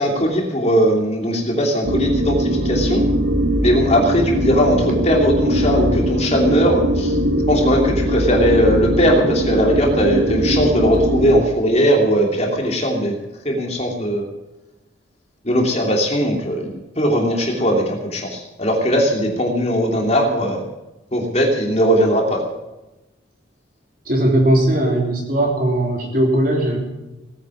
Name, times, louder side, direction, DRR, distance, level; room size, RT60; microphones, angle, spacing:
voice 1, 0.0-3.0 3.6-7.1 7.5-13.2 13.4-14.2 15.4-20.6 21.1-22.4, equal, 35° left, 1 dB, 3.0 m, -19 dB
sound 1, 1.8-11.4, equal, 70° right, 2.0 m, -20 dB
voice 2, 24.1-26.8, right 1 dB, 45° right, 0 dB, 3.6 m, -18 dB
18.0 x 10.0 x 7.2 m, 1.0 s
head